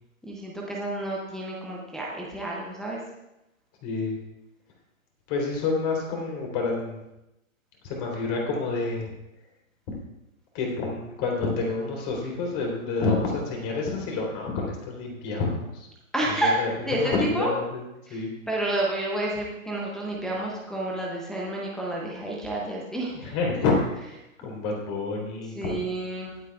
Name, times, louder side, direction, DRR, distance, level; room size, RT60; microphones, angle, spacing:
voice 1, 0.2-3.0 16.1-17.5 18.1-23.3 25.5-26.4, right 1 dB, ahead, -5 dB, 0.6 m, -30 dB
voice 2, 3.8-4.2 5.3-7.0 7.8-9.1 10.5-15.9 16.3-17.8 18.1-18.3 23.2-23.7 24.1-24.2 24.4-25.9, left 3 dB, 30° left, -1 dB, 3.4 m, -28 dB
22.5 x 8.1 x 2.4 m, 0.91 s
hypercardioid pair, 140°, 42 cm